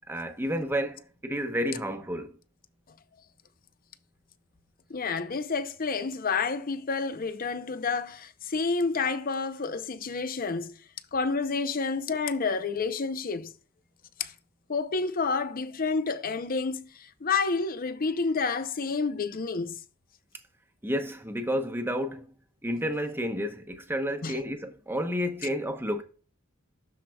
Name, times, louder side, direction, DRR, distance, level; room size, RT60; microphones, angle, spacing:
voice 1, 0.1-2.3 20.8-22.3 22.6-26.0, equal, 10° right, 0.8 m, -30 dB
voice 2, 4.9-10.8 11.1-13.5 14.2-14.3 14.7-19.8 24.2-24.4, left 4 dB, 45° left, 0.6 m, -29 dB
12.5 x 4.8 x 2.3 m
head